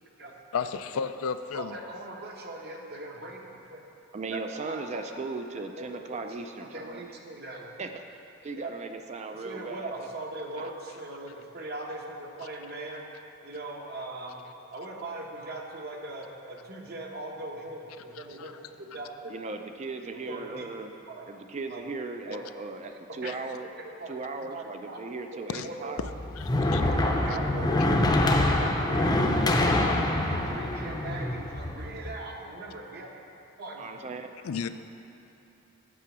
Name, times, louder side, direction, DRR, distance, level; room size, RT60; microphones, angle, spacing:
voice 1, 0.5-1.8 18.1-18.6 23.2-23.3 25.5-25.7 26.4-26.8 27.3-27.4 28.3-28.6 34.4-34.7, left 6 dB, 90° left, 11 dB, 0.4 m, -34 dB
voice 2, 1.5-3.4 3.7-3.8 4.3-4.4 4.7-4.8 5.8-6.2 6.7-7.7 8.6-8.7 9.4-13.0 13.4-14.4 14.7-18.7 18.9-19.4 20.3-20.6 21.1-21.3 21.7-21.8 22.3-22.4 23.1-23.3 24.0-24.1 24.5-25.0 25.6-26.0 27.0-28.2 28.6-29.9 30.3-33.1 33.6-33.8, right 2 dB, 50° right, 0 dB, 1.0 m, -40 dB
voice 3, 4.1-7.1 7.8-8.0 8.4-10.1 10.6-10.7 19.3-20.9 21.3-23.7 24.1-26.0 26.8-27.9 33.8-34.3, right 3 dB, 35° right, 6 dB, 0.4 m, -37 dB
sound 1, 26.0-32.1, left 1 dB, 20° left, 0.6 m, -25 dB
8.5 x 6.0 x 6.1 m, 3.0 s
head